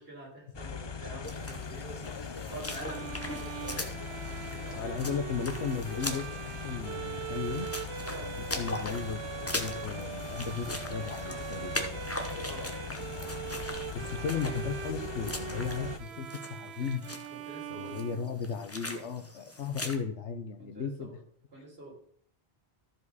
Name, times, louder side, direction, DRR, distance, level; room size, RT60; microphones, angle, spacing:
voice 1, 0.0-5.1 8.0-8.4 12.4-12.8 17.3-18.1 19.6-19.8 20.6-21.2 21.5-22.0, right 2 dB, 60° right, -3 dB, 3.3 m, -47 dB
sound 1, 0.5-16.0, left 6 dB, 40° left, 0.3 m, -40 dB
sound 2, 1.2-20.0, left 1 dB, 15° left, 0.9 m, -41 dB
Bowed string instrument, 2.7-18.7, right 11 dB, 75° right, 0.8 m, -42 dB
voice 2, 4.7-7.7 8.6-9.2 9.5-12.0 13.9-17.0 17.8-21.1, left 6 dB, 85° left, 9 dB, 1.2 m, -35 dB
13.5 x 5.0 x 4.1 m, 0.63 s
omnidirectional pair, 1.1 m